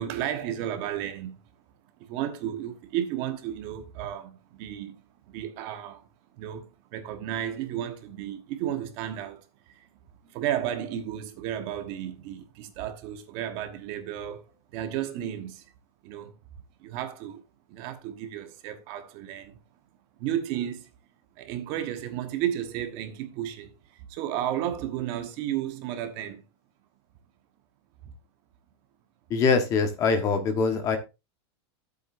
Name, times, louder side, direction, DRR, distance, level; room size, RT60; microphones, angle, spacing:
voice 1, 0.0-1.4 2.0-6.0 6.4-9.9 10.2-14.4 14.7-15.6 16.0-16.3 16.8-17.4 17.7-19.6 20.2-20.9 21.4-26.4 28.0-28.1, right 11 dB, 35° right, 1.3 m, -33 dB
voice 2, 29.3-31.0, left 5 dB, 25° left, 1.3 m, -23 dB
12.5 x 8.0 x 2.6 m
supercardioid pair, 175°, 14 cm